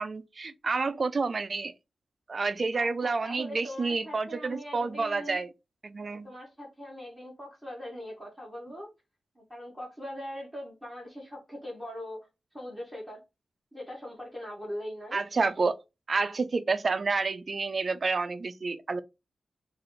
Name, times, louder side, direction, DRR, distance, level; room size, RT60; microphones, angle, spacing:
voice 1, 0.0-1.7 2.3-5.5 5.8-6.3 15.1-15.8 16.1-19.0, right 4 dB, 40° right, 0.3 m, -29 dB
voice 2, 2.7-5.4 6.0-8.9 9.3-12.2 12.5-13.2 13.7-15.2, equal, ahead, 1.2 m, -41 dB
3.3 x 2.4 x 3.8 m
wide cardioid pair, 155°, 0 cm